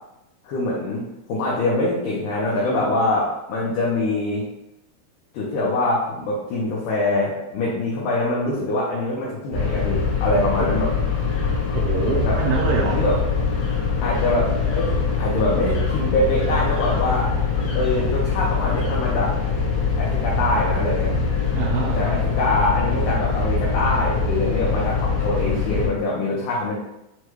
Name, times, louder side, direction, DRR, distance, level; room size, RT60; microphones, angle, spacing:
voice 1, 0.4-1.0 1.3-4.4 5.3-10.9 12.2-12.4 12.9-13.2 14.0-17.3 17.8-19.4 20.0-21.2 21.9-26.7, left 2 dB, 80° left, -5 dB, 1.8 m, -24 dB
sound 1, 9.5-25.9, left 5 dB, 65° left, 1.7 m, -23 dB
voice 2, 11.7-13.0 21.5-22.2, right 4 dB, 80° right, -3 dB, 2.1 m, -25 dB
6.2 x 2.2 x 3.0 m, 0.90 s
omnidirectional pair, 4.4 m